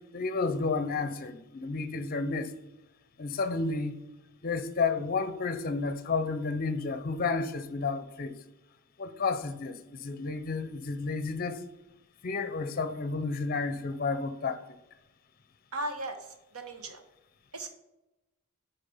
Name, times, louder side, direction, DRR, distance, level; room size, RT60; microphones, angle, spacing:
voice 1, 0.1-2.5 3.2-4.0 4.4-8.4 9.0-11.6 12.2-14.6, left 4 dB, 45° left, 0.5 m, -31 dB
voice 2, 15.7-17.0 17.5-17.7, right 1 dB, 85° right, 1.1 m, -37 dB
7.0 x 4.1 x 5.4 m
head